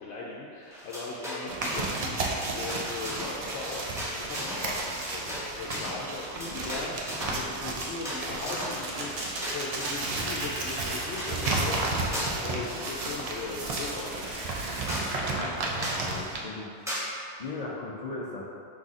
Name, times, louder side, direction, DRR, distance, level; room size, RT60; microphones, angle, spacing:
voice 1, 0.0-14.4, left 3 dB, 75° left, -5 dB, 0.8 m, -39 dB
sound 1, 0.7-2.0 2.2-10.1 10.5-11.6 12.1-12.5 12.8-13.8 14.2-14.3 14.6-14.7 14.9-15.1 15.8-16.1 16.9-17.1, equal, 5° right, 0.8 m, -37 dB
sound 2, 1.5-16.4, right 2 dB, 70° right, 0.3 m, -33 dB
sound 3, 8.3-12.8 13.5-15.2, right 2 dB, 90° right, 1.1 m, -37 dB
voice 2, 15.2-15.6 15.9-16.7 17.4-18.4, left 3 dB, 55° left, -4 dB, 0.4 m, -37 dB
5.2 x 4.0 x 2.4 m, 2.3 s
omnidirectional pair, 1.2 m